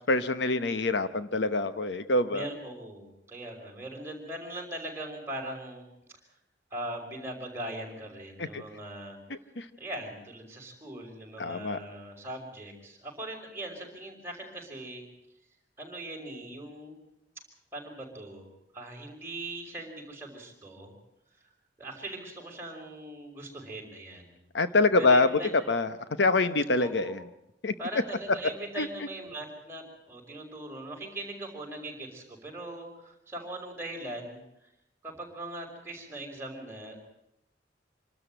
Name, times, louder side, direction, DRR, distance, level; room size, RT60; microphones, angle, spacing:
voice 1, 0.1-2.5 8.5-8.6 9.6-9.7 11.4-11.8 24.5-25.3 25.7-25.9 26.2-27.1 27.6-27.7 28.8-28.9, left 3 dB, 75° left, 11 dB, 1.0 m, -25 dB
voice 2, 2.3-5.9 6.7-9.2 9.8-15.0 15.8-17.0 17.7-18.5 18.7-20.9 21.8-24.4 25.0-25.5 26.8-27.2 27.8-34.4 35.0-37.0, right 1 dB, 15° right, 0 dB, 5.5 m, -40 dB
26.5 x 13.0 x 9.1 m, 0.82 s
head